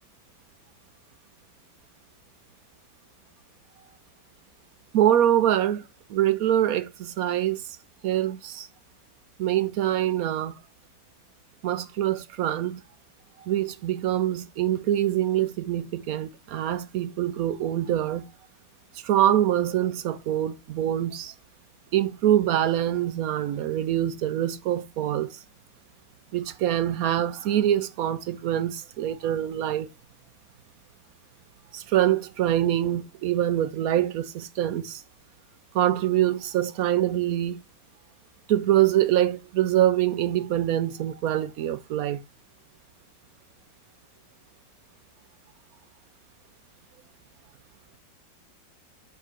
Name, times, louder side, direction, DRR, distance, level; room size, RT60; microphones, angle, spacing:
voice 1, 4.9-7.8 8.0-8.7 9.4-10.6 11.6-12.8 13.4-18.3 18.9-21.3 21.9-25.4 26.3-29.9 31.7-35.0 35.7-37.6 38.5-42.2, right 12 dB, 70° right, 0.9 m, -24 dB
5.9 x 4.6 x 5.0 m
omnidirectional pair, 1.9 m